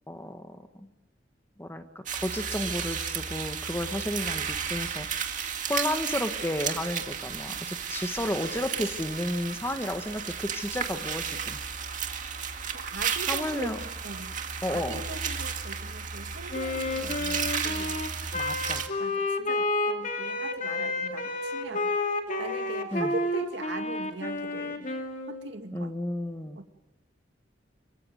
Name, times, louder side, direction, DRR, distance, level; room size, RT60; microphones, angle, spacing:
voice 1, 0.1-0.9 1.6-1.8 2.1-11.6 13.3-13.8 14.6-15.0 18.3-18.9 22.9-23.1 25.7-26.6, left 1 dB, 15° left, 7 dB, 1.5 m, -32 dB
sound 1, 2.1-18.9, right 7 dB, 45° right, 2.1 m, -33 dB
voice 2, 12.7-13.8 14.0-14.3 14.7-18.0 19.0-21.9 22.4-24.9 25.3-26.0 26.6-26.7, right 2 dB, 75° right, 6 dB, 2.1 m, -40 dB
Wind instrument woodwind instrument, 16.5-25.5, left 2 dB, 45° left, 2.6 m, -30 dB
26.5 x 24.0 x 9.2 m, 1.0 s
head